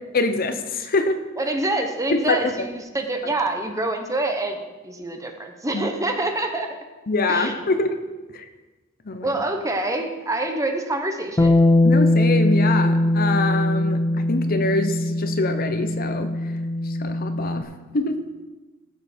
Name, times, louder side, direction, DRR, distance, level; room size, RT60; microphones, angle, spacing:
voice 1, 0.1-1.1 2.1-2.4 5.7-5.8 7.1-8.0 8.3-8.4 9.1-9.3 11.8-16.3 17.0-17.6 17.9-18.2, left 3 dB, 45° left, 8 dB, 0.8 m, -24 dB
voice 2, 1.4-6.7 7.3-7.6 9.2-11.6, right 2 dB, 15° right, 5 dB, 1.0 m, -26 dB
Bass guitar, 11.4-17.6, left 1 dB, 15° left, 0.4 m, -20 dB
15.0 x 6.9 x 4.4 m, 1.2 s
head